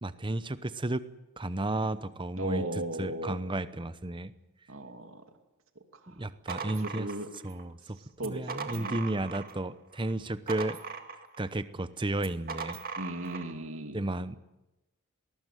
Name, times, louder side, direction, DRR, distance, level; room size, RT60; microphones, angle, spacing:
voice 1, 0.0-1.0 1.4-2.6 3.0-4.3 6.1-7.1 7.4-8.0 8.2-10.8 11.4-12.8 13.9-14.4, right 2 dB, 20° right, 14 dB, 0.8 m, -33 dB
voice 2, 2.4-3.4 4.7-5.2 5.9-7.3 8.2-9.0 13.0-14.0, right 1 dB, 65° right, 6 dB, 2.7 m, -37 dB
sound 1, 6.5-7.6 8.2-9.6 10.0-11.5 12.2-13.5, right 5 dB, 45° right, 2.0 m, -39 dB
20.0 x 19.0 x 9.2 m, 0.95 s
head